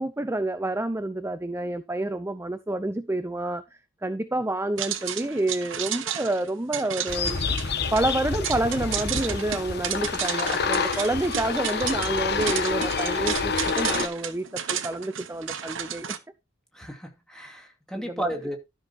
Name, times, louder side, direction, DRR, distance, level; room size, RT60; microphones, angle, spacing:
voice 1, 0.0-3.6 4.0-7.4 7.9-16.1 18.0-18.3, right 2 dB, 15° right, 0.6 m, -28 dB
sound 1, 4.8-16.2, right 9 dB, 75° right, 1.1 m, -33 dB
sound 2, 7.1-14.1, left 5 dB, 55° left, 1.2 m, -28 dB
voice 2, 16.7-18.6, right 1 dB, 5° left, 2.5 m, -33 dB
12.5 x 6.3 x 4.2 m
head